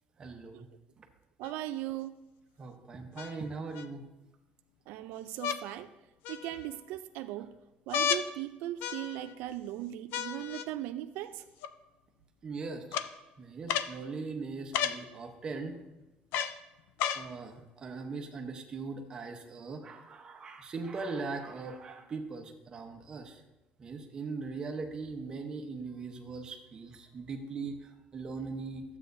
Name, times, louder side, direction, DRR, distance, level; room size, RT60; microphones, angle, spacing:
voice 1, 0.2-0.7 1.0-1.1 2.6-4.0 12.4-13.0 13.4-15.8 17.1-23.4 23.8-28.8, right 4 dB, 25° right, 3 dB, 0.9 m, -40 dB
sound 1, 1.4-1.5 3.2-3.9 5.4-5.6 6.2-6.8 7.9-8.3 8.8-9.4 10.1-10.7 11.6-11.7 12.9-13.1 13.7-13.9 14.7-15.0 16.3-16.6 17.0-17.3 18.1-18.2, left 8 dB, 85° left, 0.4 m, -33 dB
voice 2, 1.4-2.2 4.9-5.9 6.3-7.6 7.9-11.4, right 13 dB, 90° right, 10 dB, 0.4 m, -38 dB
12.5 x 8.0 x 2.7 m, 1.0 s
cardioid pair, 180°, 3 cm